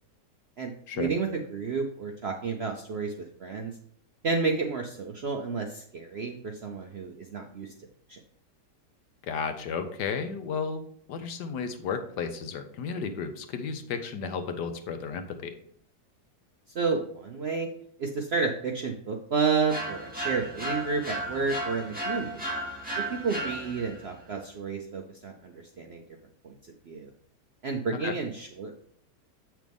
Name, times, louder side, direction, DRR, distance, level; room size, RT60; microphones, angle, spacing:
voice 1, 0.6-3.1 3.4-3.7 4.2-7.7 8.1-8.2 16.7-17.7 18.0-22.4 23.1-26.0 26.4-26.6 26.9-27.1 27.6-28.8, right 4 dB, 60° right, 3 dB, 0.6 m, -31 dB
voice 2, 9.2-10.8 11.1-15.5 28.0-28.2, left 6 dB, 75° left, 8 dB, 1.4 m, -33 dB
sound 1, 19.7-24.0, right 1 dB, 5° right, 2.1 m, -34 dB
7.8 x 6.2 x 3.5 m, 0.62 s
omnidirectional pair, 1.9 m